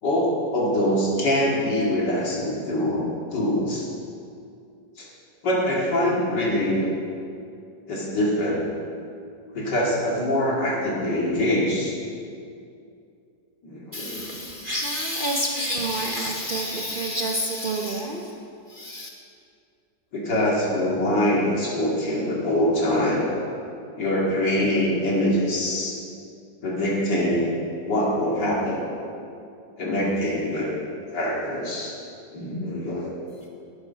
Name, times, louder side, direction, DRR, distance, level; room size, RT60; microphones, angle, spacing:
voice 1, 0.0-3.9 5.0-5.1 5.4-6.9 7.9-8.7 9.5-11.9 13.6-14.4 20.1-23.3 24.0-25.9 26.6-27.5 27.9-28.9 29.8-30.7 31.1-31.9 32.3-33.1, left 1 dB, 80° left, -4 dB, 2.9 m, -24 dB
voice 2, 13.9-18.4 18.7-19.1, equal, 40° right, -1 dB, 0.8 m, -28 dB
11.5 x 8.7 x 5.7 m, 2.4 s
omnidirectional pair, 1.8 m